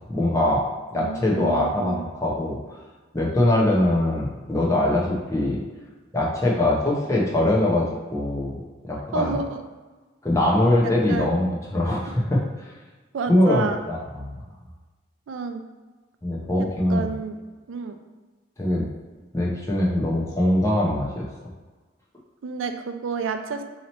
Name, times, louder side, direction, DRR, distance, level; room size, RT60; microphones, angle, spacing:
voice 1, 0.1-0.6 0.9-2.8 3.1-5.6 6.1-8.5 8.8-9.4 10.2-12.7 13.3-14.4 16.2-17.1 18.6-18.8 19.3-21.2, left 1 dB, 15° left, -3 dB, 0.6 m, -22 dB
voice 2, 0.9-2.0 9.1-9.6 10.8-11.3 13.1-13.8 15.3-15.6 16.9-17.4 17.7-18.0 22.4-23.6, right 5 dB, 80° right, 7 dB, 0.4 m, -30 dB
2.9 x 2.8 x 4.1 m, 1.3 s
head